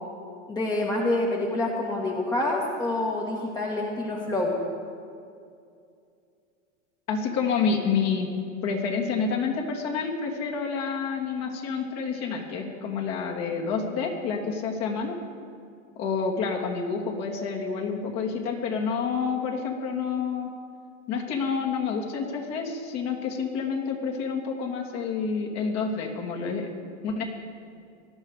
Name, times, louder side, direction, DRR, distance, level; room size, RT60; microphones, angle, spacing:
voice 1, 0.5-4.5, left 2 dB, 10° left, -2 dB, 1.7 m, -27 dB
voice 2, 7.1-8.3 8.6-15.1 16.0-20.5 21.1-26.7 27.0-27.2, left 5 dB, 45° left, 1 dB, 2.6 m, -28 dB
18.5 x 11.5 x 4.9 m, 2.4 s
hypercardioid pair, 115°, 38 cm